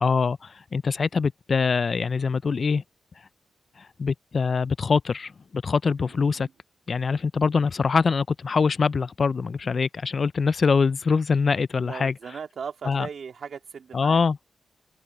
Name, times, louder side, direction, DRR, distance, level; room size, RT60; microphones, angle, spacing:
voice 1, 0.0-2.8 3.8-6.5 6.9-12.1 12.8-13.1 13.9-14.4, left 5 dB, 45° left, 0.3 m, -24 dB
voice 2, 11.8-14.2, right 6 dB, 60° right, 2.1 m, -37 dB
wide cardioid pair, 140°, 0 cm